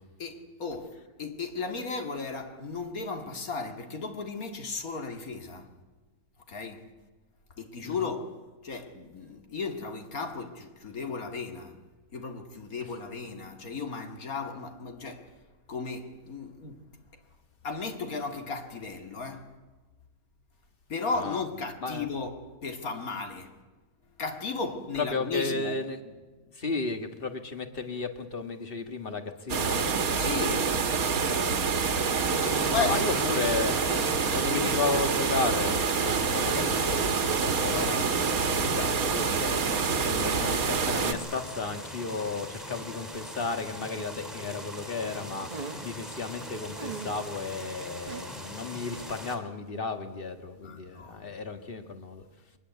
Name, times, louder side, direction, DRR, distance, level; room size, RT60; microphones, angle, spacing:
voice 1, 0.2-5.7 6.5-6.9 7.6-8.3 8.6-11.8 12.1-15.4 15.7-16.8 17.6-19.5 20.9-23.6 24.2-25.8 30.2-30.9 32.0-33.2 34.5-34.8 50.6-51.4, left 4 dB, 70° left, 2.6 m, -35 dB
voice 2, 25.0-26.1 26.5-30.3 31.5-32.1 32.8-34.1 34.3-52.2, left 3 dB, 40° left, 1.9 m, -34 dB
sound 1, 29.5-41.1, right 5 dB, 75° right, 1.8 m, -27 dB
sound 2, 32.2-49.4, equal, ahead, 2.8 m, -41 dB
sound 3, 40.6-42.0 42.3-42.4 45.1-46.0 46.7-47.3 48.1-48.2, right 5 dB, 30° right, 1.2 m, -42 dB
23.0 x 20.0 x 8.3 m
omnidirectional pair, 1.6 m